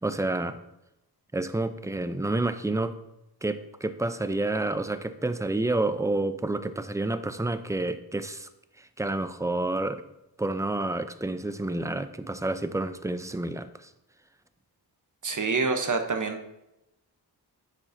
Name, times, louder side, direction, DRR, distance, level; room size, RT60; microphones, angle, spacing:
voice 1, 0.0-0.6 1.3-2.9 3.4-8.5 8.8-10.0 10.4-13.9, right 2 dB, 10° right, 11 dB, 0.4 m, -29 dB
voice 2, 15.2-16.4, right 4 dB, 50° right, 6 dB, 0.9 m, -26 dB
10.0 x 7.4 x 2.6 m, 0.89 s
wide cardioid pair, 100°, 41 cm